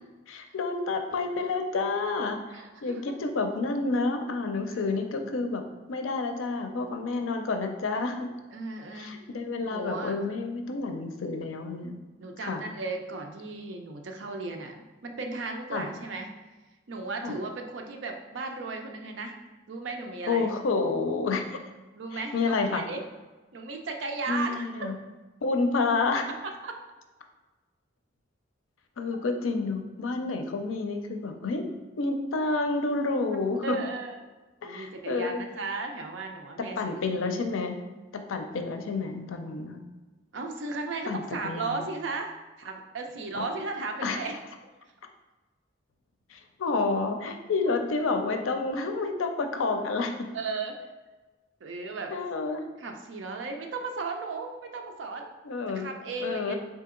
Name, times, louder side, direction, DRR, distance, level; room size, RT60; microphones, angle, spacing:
voice 1, 0.3-5.6 5.9-8.3 8.9-11.9 12.4-12.6 15.7-15.9 17.2-17.4 20.3-21.6 22.1-22.8 24.3-25.0 25.4-26.3 29.0-31.7 32.0-33.8 34.6-35.4 36.6-37.8 38.1-39.8 41.1-41.9 43.4-43.5 44.0-44.2 46.3-50.3 52.1-52.6 55.4-55.9 56.2-56.5, left 3 dB, 90° left, 6 dB, 0.5 m, -29 dB
voice 2, 2.5-3.1 4.7-5.0 8.5-9.2 9.6-10.1 12.2-16.3 16.9-19.4 19.7-20.5 22.0-23.0 23.5-24.9 26.6-26.8 33.6-34.2 34.6-37.0 40.3-44.4 50.3-50.8 51.6-52.1 52.8-55.3 55.7-56.5, right 3 dB, 70° right, 4 dB, 0.5 m, -35 dB
3.9 x 2.8 x 3.7 m, 1.2 s
head